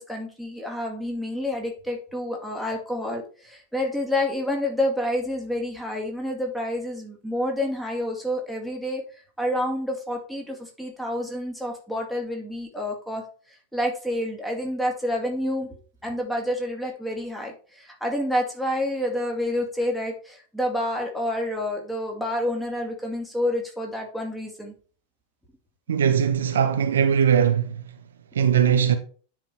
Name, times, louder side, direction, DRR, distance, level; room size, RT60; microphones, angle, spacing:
voice 1, 0.0-13.2 13.5-15.7 16.0-24.7, left 1 dB, ahead, 2.3 m, -28 dB
voice 2, 25.9-27.8 28.3-29.0, right 8 dB, 65° right, 0.8 m, -20 dB
9.6 x 4.4 x 4.4 m
figure-of-eight pair, 90°, 0 cm